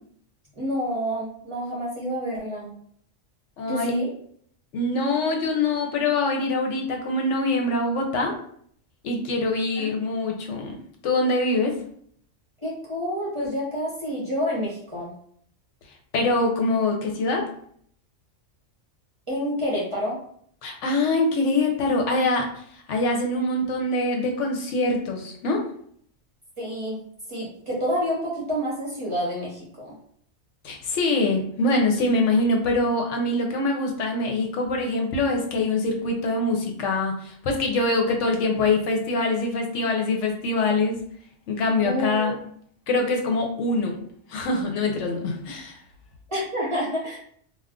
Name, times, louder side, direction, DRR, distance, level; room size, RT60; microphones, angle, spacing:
voice 1, 0.6-2.7 3.7-4.1 9.8-9.9 12.6-15.1 19.3-20.2 26.6-27.0 27.3-29.9 41.8-42.3 46.3-47.2, equal, 30° right, -6 dB, 0.8 m, -28 dB
voice 2, 3.6-3.9 4.7-8.3 9.0-10.8 11.0-11.8 16.1-17.5 20.6-22.6 22.9-25.6 30.6-41.0 41.5-42.3 42.9-44.0 44.3-45.8, left 2 dB, 75° left, 2 dB, 0.9 m, -24 dB
2.3 x 2.3 x 3.5 m, 0.63 s
omnidirectional pair, 1.3 m